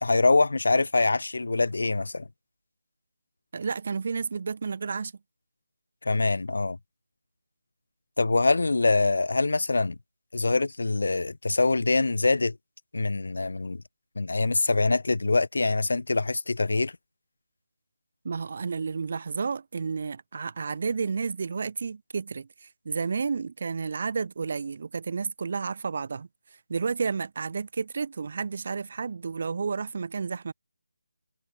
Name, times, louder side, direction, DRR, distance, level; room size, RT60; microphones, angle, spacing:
voice 1, 0.0-2.3 6.0-6.8 8.2-10.0 10.3-12.6 12.9-13.8 14.1-16.9, left 3 dB, 65° left, 1.5 m, -24 dB
voice 2, 3.5-5.1 18.2-26.3 26.7-30.5, right 5 dB, 45° right, 4.4 m, -31 dB
figure-of-eight pair, 155°, 0 cm